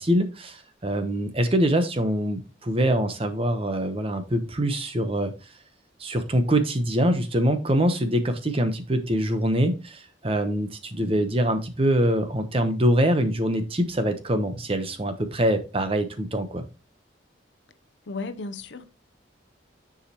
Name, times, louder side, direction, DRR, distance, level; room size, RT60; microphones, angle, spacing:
voice 1, 0.0-5.3 6.0-16.6, equal, 30° right, 0.9 m, -24 dB
voice 2, 18.1-18.8, left 3 dB, 70° left, 0.6 m, -34 dB
9.9 x 4.9 x 2.9 m
head